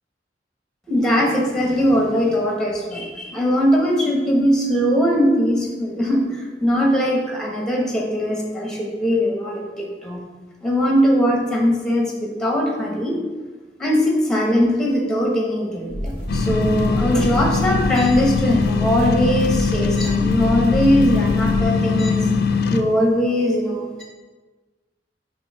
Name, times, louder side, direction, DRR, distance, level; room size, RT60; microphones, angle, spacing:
voice 1, 0.9-10.2 10.6-13.2 13.8-22.3 22.7-24.0, equal, 5° left, -1 dB, 1.0 m, -20 dB
sound 1, 15.9-21.6, equal, 30° right, 1.7 m, -29 dB
sound 2, 16.3-22.8, left 5 dB, 60° left, 0.4 m, -21 dB
5.4 x 3.5 x 5.5 m, 1.3 s
head